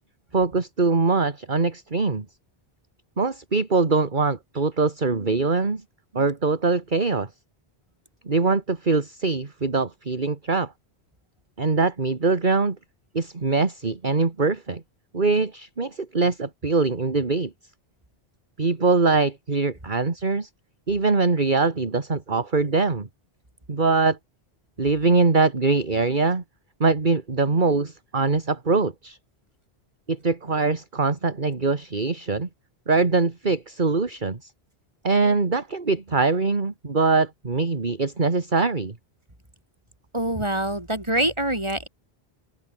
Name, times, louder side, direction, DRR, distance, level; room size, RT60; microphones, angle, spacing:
voice 1, 0.3-2.3 3.2-5.8 6.1-7.3 8.3-10.7 11.6-12.8 13.1-14.8 15.1-17.5 18.6-20.5 20.9-23.1 23.7-24.2 24.8-26.4 26.8-29.2 30.1-32.5 32.9-34.5 35.0-38.9, right 4 dB, 50° right, 2.1 m, -23 dB
voice 2, 40.1-41.9, right 1 dB, 25° right, 4.9 m, -25 dB
open air
omnidirectional pair, 1.1 m